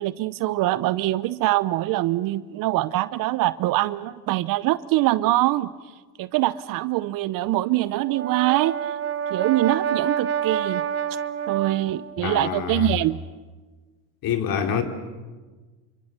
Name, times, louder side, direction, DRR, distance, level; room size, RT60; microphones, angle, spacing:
voice 1, 0.0-5.7 6.2-8.8 9.3-10.8 11.5-13.2, right 16 dB, 45° right, 0.8 m, -23 dB
Brass instrument, 7.9-12.2, right 9 dB, 30° right, 2.7 m, -28 dB
voice 2, 12.2-12.9 14.2-14.8, left 8 dB, 45° left, 3.5 m, -26 dB
28.5 x 26.0 x 6.7 m
hypercardioid pair, 90°, 47 cm